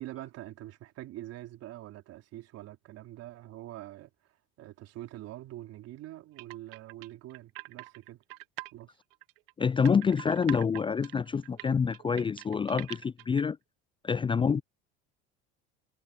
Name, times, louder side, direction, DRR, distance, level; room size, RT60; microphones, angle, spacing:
voice 1, 0.0-4.1 4.6-8.2 8.7-9.0 14.3-14.5, right 15 dB, 55° right, 4.0 m, -45 dB
sound 1, 6.4-8.7 9.1-13.4, right 24 dB, 75° right, 1.1 m, -44 dB
voice 2, 9.6-13.6 14.0-14.6, left 6 dB, 15° left, 0.5 m, -27 dB
hypercardioid pair, 85°, 29 cm